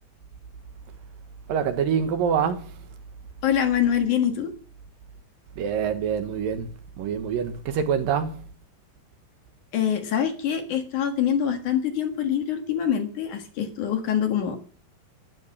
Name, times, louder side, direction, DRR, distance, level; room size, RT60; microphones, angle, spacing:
voice 1, 1.5-2.8 5.6-6.7 7.0-8.4, right 7 dB, 70° right, 2.8 m, -25 dB
voice 2, 3.4-4.5 9.7-14.6, left 9 dB, 60° left, 2.9 m, -24 dB
12.0 x 11.0 x 7.1 m
omnidirectional pair, 4.5 m